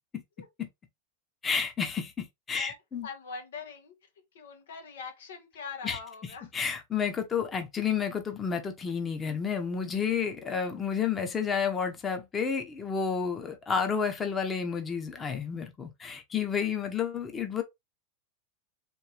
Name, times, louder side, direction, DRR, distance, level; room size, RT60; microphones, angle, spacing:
voice 1, 1.4-3.1 5.8-6.0 6.5-17.6, left 6 dB, 20° left, 0.9 m, -30 dB
voice 2, 3.0-3.9 4.3-6.5, left 5 dB, 85° left, 1.4 m, -42 dB
4.4 x 2.8 x 3.4 m
hypercardioid pair, 125°, 0 cm